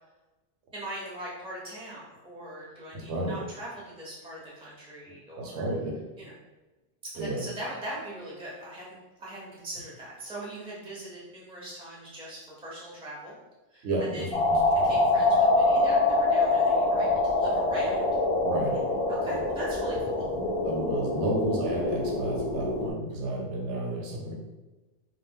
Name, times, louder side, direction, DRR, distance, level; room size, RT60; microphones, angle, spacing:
voice 1, 0.7-5.6 6.2-6.3 7.1-13.3 13.7-14.3 14.8-18.1 19.1-20.3, right 1 dB, 5° right, -6 dB, 0.5 m, -41 dB
voice 2, 2.9-3.3 5.4-5.9 7.2-7.4 13.8-15.1 18.4-19.2 20.6-24.3, right 2 dB, 75° right, -1 dB, 0.9 m, -32 dB
sound 1, 14.3-22.9, left 2 dB, 70° left, 0.3 m, -25 dB
2.1 x 2.0 x 3.4 m, 1.1 s
omnidirectional pair, 1.2 m